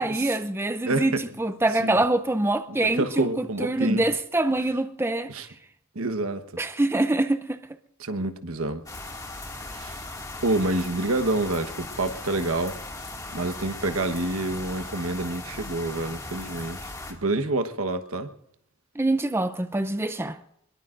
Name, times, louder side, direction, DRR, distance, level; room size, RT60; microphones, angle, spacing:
voice 1, 0.0-5.3 6.6-7.6 19.0-20.4, right 2 dB, 10° right, 0.5 m, -25 dB
voice 2, 2.8-4.0 5.3-5.5 5.9-6.4 8.0-8.8 9.7-10.0 10.4-12.7 13.3-18.3, right 2 dB, 85° right, 1.2 m, -27 dB
sound 1, 8.9-17.1, left 2 dB, 15° left, 2.1 m, -38 dB
23.0 x 22.0 x 2.6 m
head